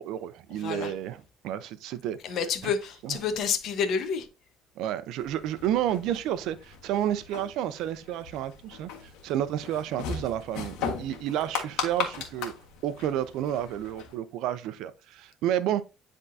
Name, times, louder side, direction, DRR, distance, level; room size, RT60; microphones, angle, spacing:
voice 1, 0.0-2.4 2.6-2.7 3.0-3.2 4.8-12.5 12.8-15.8, right 11 dB, 75° right, 0.6 m, -31 dB
voice 2, 0.5-0.9 2.2-4.3, left 6 dB, 60° left, 1.1 m, -29 dB
sound 1, 5.2-14.2, left 6 dB, 80° left, 1.5 m, -38 dB
10.0 x 3.6 x 2.7 m
cardioid pair, 105°, 0 cm